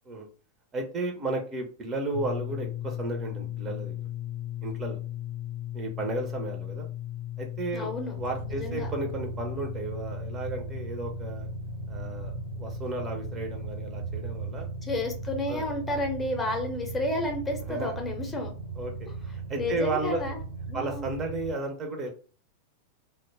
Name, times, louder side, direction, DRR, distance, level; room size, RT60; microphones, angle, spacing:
voice 1, 0.7-4.0 4.6-5.0 5.7-6.9 7.4-11.5 11.9-14.7 15.5-15.7 17.7-17.9 18.8-18.9 19.3-20.2 20.7-22.1, right 2 dB, 25° right, 2 dB, 0.5 m, -33 dB
sound 1, 2.1-21.4, left 13 dB, 55° left, 0.5 m, -39 dB
voice 2, 7.7-8.2 8.5-8.9 14.8-18.5 19.5-20.4 20.7-21.1, left 1 dB, 15° left, 2 dB, 0.6 m, -31 dB
sound 2, 8.1-21.5, right 6 dB, 80° right, 1.0 m, -38 dB
2.1 x 2.0 x 3.2 m, 0.39 s
figure-of-eight pair, 90°, 0 cm